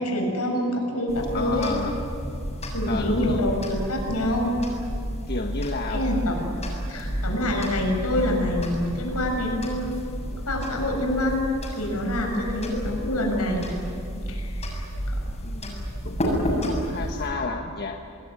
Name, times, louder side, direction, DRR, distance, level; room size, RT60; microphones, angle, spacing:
voice 1, 0.0-1.7 2.7-4.5 5.9-6.4 6.9-13.8 14.3-15.2, left 1 dB, 85° left, 2 dB, 7.1 m, -26 dB
sound 1, 1.1-17.3, equal, 30° left, 7.4 m, -31 dB
voice 2, 1.3-1.9 2.9-3.4 5.3-6.2 15.4-18.0, left 3 dB, 45° left, 2 dB, 1.4 m, -31 dB
26.5 x 20.5 x 9.7 m, 2.5 s
head